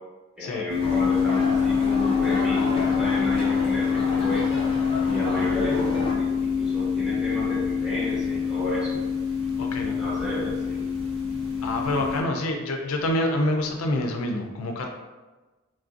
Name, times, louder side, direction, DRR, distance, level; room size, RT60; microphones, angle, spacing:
voice 1, 0.4-4.7 5.0-9.0 9.8-10.8, equal, 5° right, -9 dB, 1.2 m, -32 dB
sound 1, 0.7-12.2, left 6 dB, 75° right, 1.5 m, -25 dB
sound 2, 0.8-6.1, left 1 dB, 25° left, 0.4 m, -33 dB
voice 2, 9.6-10.0 11.6-14.9, left 1 dB, 85° left, 3 dB, 0.4 m, -27 dB
3.2 x 2.4 x 2.5 m, 1.2 s
head